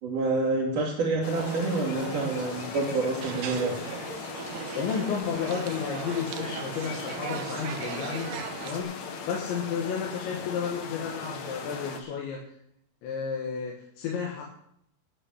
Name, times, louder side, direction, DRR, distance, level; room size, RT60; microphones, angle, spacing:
voice 1, 0.0-3.7, right 3 dB, 50° right, -5 dB, 3.6 m, -27 dB
sound 1, 1.2-12.0, left 5 dB, 65° left, 1.8 m, -39 dB
sound 2, 1.3-8.8, right 8 dB, 70° right, 2.1 m, -38 dB
voice 2, 4.7-8.3 8.6-8.9 9.3-12.4 13.0-14.5, left 6 dB, 85° left, -2 dB, 3.9 m, -32 dB
12.0 x 8.5 x 6.5 m, 0.70 s
omnidirectional pair, 5.1 m